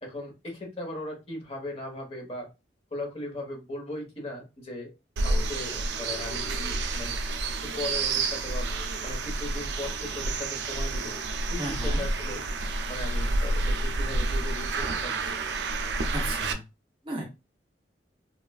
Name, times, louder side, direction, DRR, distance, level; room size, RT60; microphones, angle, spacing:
voice 1, 0.0-2.5 2.9-4.9 5.2-7.2 7.8-8.7 9.0-11.1 11.5-12.4 12.9-15.1, left 1 dB, 35° left, 1 dB, 1.0 m, -38 dB
sound 1, 5.2-16.5, right 2 dB, 75° right, 0.4 m, -29 dB
voice 2, 11.6-12.0 16.1-16.6 17.0-17.2, right 1 dB, 30° right, 1 dB, 0.6 m, -34 dB
3.1 x 2.4 x 2.3 m, 0.26 s
head